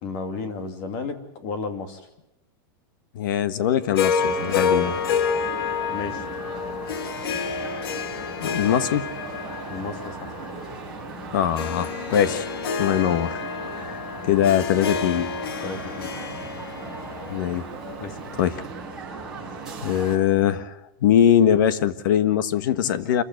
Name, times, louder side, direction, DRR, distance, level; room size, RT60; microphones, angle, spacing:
voice 1, 0.0-2.1 5.9-6.3 9.7-10.5 15.6-16.1 18.0-18.3, left 4 dB, 35° left, 7 dB, 2.7 m, -33 dB
voice 2, 3.1-5.0 8.4-9.1 11.3-12.5 12.8-13.5 13.8-14.0 14.2-15.3 17.3-17.7 18.4-18.5 19.8-20.8 21.0-23.2, left 10 dB, 60° left, 12 dB, 1.4 m, -21 dB
Harp, 4.0-18.3, left 6 dB, 85° left, 1.8 m, -29 dB
sound 1, 4.2-20.2, right 3 dB, 5° right, 5.2 m, -38 dB
27.5 x 15.5 x 8.0 m, 0.90 s
supercardioid pair, 175°, 12 cm